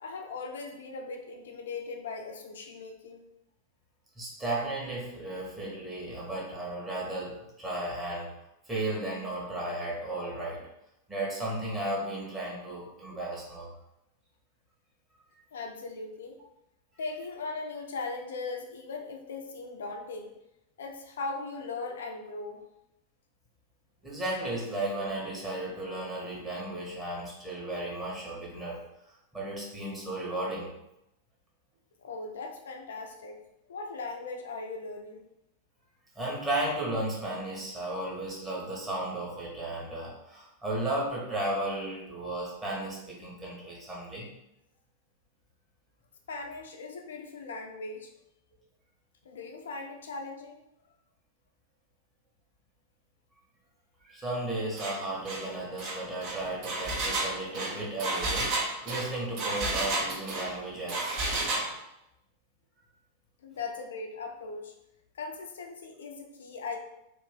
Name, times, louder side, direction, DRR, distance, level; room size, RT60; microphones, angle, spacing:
voice 1, 0.0-3.2 13.2-13.3 15.5-16.4 17.0-20.3 20.8-22.6 32.0-33.4 33.7-35.3 46.3-48.1 49.2-50.6 63.4-64.7 65.1-66.8, left 3 dB, 65° left, 3 dB, 0.5 m, -39 dB
voice 2, 4.2-8.3 8.7-10.7 11.1-13.7 24.0-28.8 29.1-30.7 36.1-44.3 54.0-61.2, right 1 dB, 15° right, -5 dB, 1.3 m, -34 dB
Engine, 54.8-55.0 55.3-55.4 55.8-60.5 60.9-61.7, right 2 dB, 40° right, 0.8 m, -31 dB
2.9 x 2.6 x 3.6 m, 0.85 s
figure-of-eight pair, 90°, 0 cm